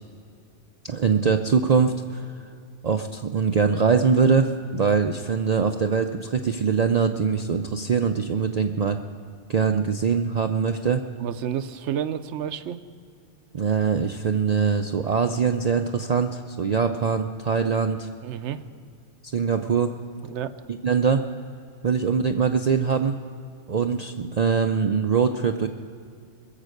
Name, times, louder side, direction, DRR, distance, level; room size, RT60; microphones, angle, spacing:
voice 1, 0.8-2.3 2.8-9.0 9.5-11.0 13.5-18.1 19.3-19.9 20.8-21.2 21.8-23.2 23.7-25.7, right 6 dB, 50° right, 6 dB, 0.5 m, -22 dB
voice 2, 11.2-12.8 18.2-18.6 20.2-20.6, right 9 dB, 75° right, 12 dB, 0.9 m, -30 dB
21.5 x 7.5 x 6.5 m, 2.3 s
omnidirectional pair, 1.2 m